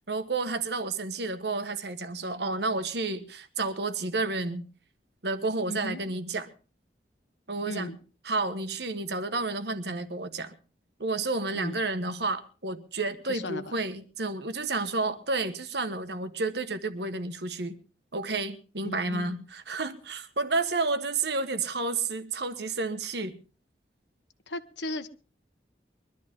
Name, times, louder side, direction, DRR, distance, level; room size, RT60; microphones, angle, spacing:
voice 1, 0.1-4.6 5.2-6.5 7.5-7.9 8.2-10.6 11.0-17.8 18.1-23.4, right 3 dB, 70° right, 1.5 m, -31 dB
voice 2, 5.7-6.0 7.6-8.0 11.5-11.8 13.3-13.6 18.8-19.3 24.5-25.1, left 1 dB, 85° left, 1.4 m, -36 dB
22.5 x 12.5 x 3.7 m
head